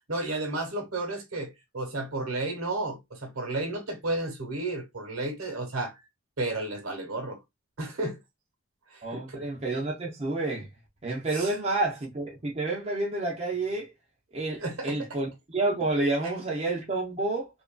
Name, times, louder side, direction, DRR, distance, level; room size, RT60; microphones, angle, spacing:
voice 1, 0.1-5.9 6.4-7.4 7.8-8.2 8.9-9.5 11.3-11.5 14.6-15.0, right 2 dB, 75° right, 1.1 m, -32 dB
voice 2, 9.0-10.7 11.0-13.9 14.3-17.5, right 2 dB, 30° right, 0.6 m, -29 dB
2.9 x 2.5 x 2.2 m
head